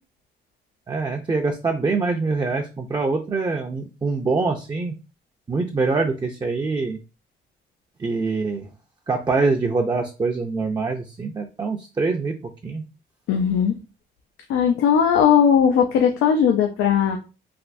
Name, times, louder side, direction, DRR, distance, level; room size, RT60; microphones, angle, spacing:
voice 1, 0.9-4.9 5.5-7.0 8.0-8.7 9.1-12.3 12.6-12.8, right 3 dB, 20° right, 3 dB, 0.5 m, -24 dB
voice 2, 13.3-13.7 14.5-17.2, left 8 dB, 90° left, 4 dB, 0.5 m, -18 dB
3.4 x 2.5 x 2.5 m, 0.31 s
cardioid pair, 90°, 20 cm